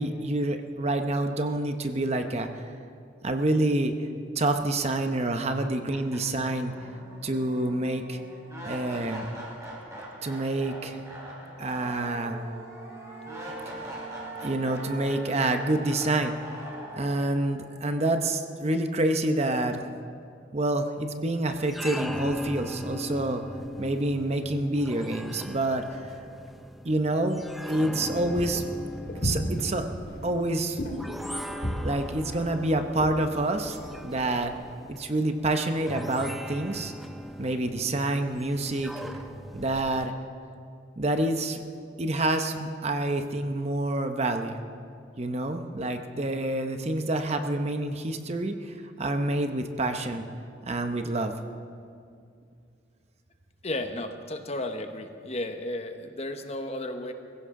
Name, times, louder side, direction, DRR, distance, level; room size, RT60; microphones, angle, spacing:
voice 1, 0.0-2.6 3.2-3.9 4.4-6.7 7.2-8.2 8.6-9.2 10.2-11.0 11.6-12.4 13.7-13.8 14.4-16.3 17.0-19.8 20.5-23.4 23.8-25.8 26.8-28.6 29.2-29.8 30.2-30.8 31.8-33.8 34.0-34.5 34.9-36.9 37.4-38.9 39.5-40.1 41.0-41.7 42.0-44.6 45.2-50.3 50.6-51.3, right 2 dB, 35° right, 6 dB, 0.8 m, -27 dB
sound 1, 5.4-5.5 5.9-18.9, right 1 dB, 15° right, 4.0 m, -42 dB
sound 2, 21.5-40.1, equal, ahead, 0.6 m, -39 dB
sound 3, 28.1-34.6, equal, 55° left, 2.1 m, -35 dB
voice 2, 53.6-57.1, left 1 dB, 35° left, 6 dB, 0.9 m, -33 dB
23.0 x 15.5 x 3.7 m, 2.4 s
head